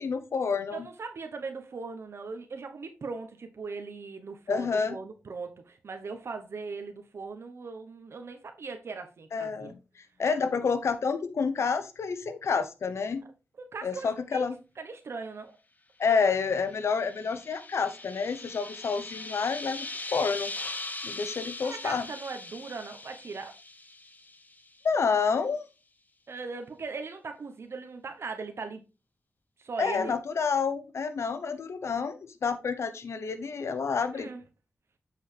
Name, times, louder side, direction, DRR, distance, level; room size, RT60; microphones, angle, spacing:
voice 1, 0.0-0.9 4.5-5.0 9.3-9.7 10.2-13.2 13.8-14.5 16.0-20.5 21.0-22.1 24.8-25.6 29.8-34.3, left 5 dB, 80° left, 0.9 m, -29 dB
voice 2, 0.7-9.7 13.6-14.4 14.8-15.6 16.1-16.2 21.6-23.5 26.3-28.8 29.6-30.2 34.1-34.4, right 4 dB, 70° right, 1.0 m, -39 dB
sound 1, 16.5-24.8, left 2 dB, 35° left, 1.0 m, -40 dB
7.6 x 5.3 x 3.3 m
cardioid pair, 70°, 5 cm